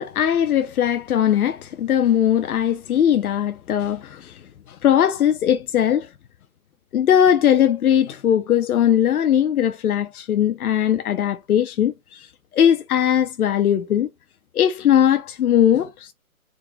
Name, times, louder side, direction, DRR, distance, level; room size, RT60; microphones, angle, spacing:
voice 1, 0.0-4.4 4.7-6.1 6.9-12.3 12.5-14.1 14.5-16.1, left 10 dB, 85° left, 0.6 m, -19 dB
3.7 x 2.2 x 3.3 m
hypercardioid pair, 155°, 43 cm